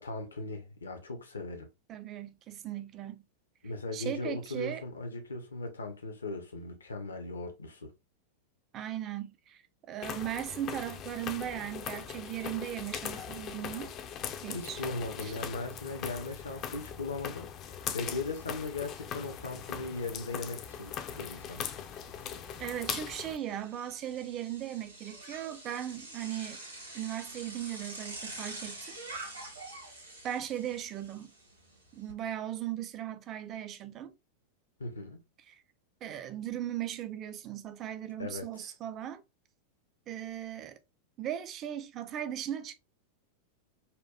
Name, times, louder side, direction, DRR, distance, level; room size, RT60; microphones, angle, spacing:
voice 1, 0.0-1.7 3.6-7.9 14.5-21.6 34.8-35.2 38.2-38.5, left 3 dB, 70° left, 0.7 m, -38 dB
voice 2, 1.9-3.2 3.9-4.8 8.7-13.9 14.4-14.8 15.2-15.4 22.6-26.6 26.9-29.0 30.2-31.3 31.9-34.1 35.5-35.6 36.0-39.2 40.1-40.8 41.2-42.7, right 11 dB, 30° right, 0.4 m, -38 dB
sound 1, 10.0-23.4, left 8 dB, 35° left, 0.4 m, -40 dB
Bicycle, 17.9-18.0 18.3-32.1, right 2 dB, 80° right, 1.8 m, -47 dB
4.3 x 2.3 x 2.2 m
figure-of-eight pair, 90°, 0 cm